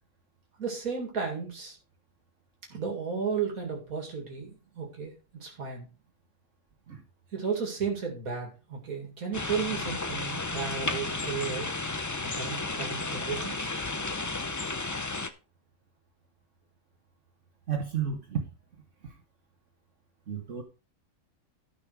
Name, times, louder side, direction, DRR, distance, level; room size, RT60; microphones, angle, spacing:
voice 1, 0.6-1.8 2.7-5.9 7.3-11.7 12.3-13.7, right 6 dB, 85° right, 1 dB, 2.7 m, -34 dB
sound 1, 9.3-15.3, left 3 dB, 25° left, 0.3 m, -33 dB
voice 2, 17.7-18.4 19.0-19.1 20.3-20.6, right 7 dB, 60° right, 3 dB, 1.5 m, -32 dB
13.0 x 5.6 x 4.7 m, 0.33 s
omnidirectional pair, 1.5 m